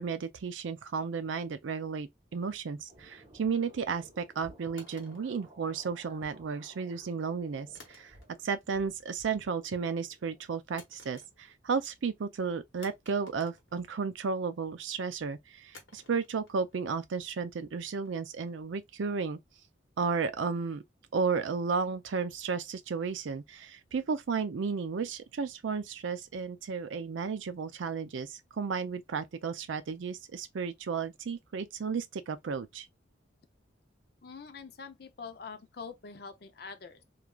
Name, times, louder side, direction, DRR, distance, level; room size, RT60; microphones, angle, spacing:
voice 1, 0.0-8.1 8.4-19.4 20.0-20.8 21.1-32.9, right 5 dB, 75° right, 0.4 m, -33 dB
sound 1, 2.9-10.5, right 1 dB, 25° right, 0.7 m, -56 dB
sound 2, 4.8-6.2 7.8-8.6 8.9-9.4 10.8-11.7 12.0-12.1 12.8-14.3 15.7-18.8, left 3 dB, 75° left, 1.1 m, -57 dB
voice 2, 34.2-37.0, left 5 dB, 55° left, 0.5 m, -45 dB
3.1 x 2.4 x 2.2 m
head